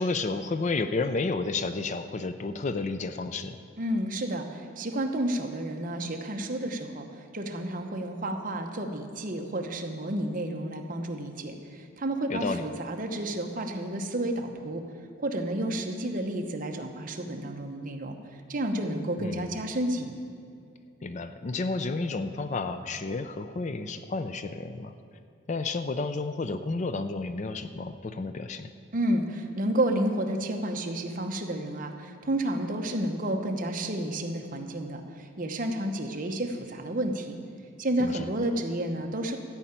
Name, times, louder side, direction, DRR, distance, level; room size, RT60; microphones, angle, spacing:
voice 1, 0.0-3.6 12.3-12.6 19.2-19.4 21.0-24.9 25.5-28.7 38.0-38.3, left 3 dB, 35° left, 10 dB, 0.4 m, -31 dB
voice 2, 3.8-7.1 7.3-14.8 15.2-18.2 18.5-20.2 28.9-37.4 37.8-39.4, right 1 dB, 40° right, 4 dB, 1.0 m, -31 dB
13.5 x 5.6 x 8.8 m, 2.4 s
head